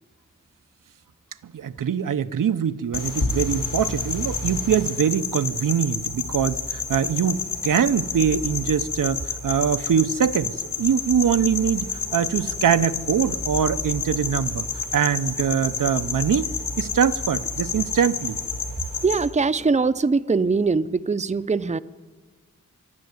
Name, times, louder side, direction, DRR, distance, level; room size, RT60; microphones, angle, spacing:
voice 1, 1.5-11.9 12.1-14.6 14.9-16.5 16.8-18.4, right 8 dB, 85° right, 0.7 m, -23 dB
sound 1, 2.9-19.3, left 5 dB, 85° left, 4.3 m, -29 dB
voice 2, 19.0-21.8, right 4 dB, 20° right, 0.6 m, -22 dB
26.0 x 12.0 x 9.5 m
wide cardioid pair, 95°, 31 cm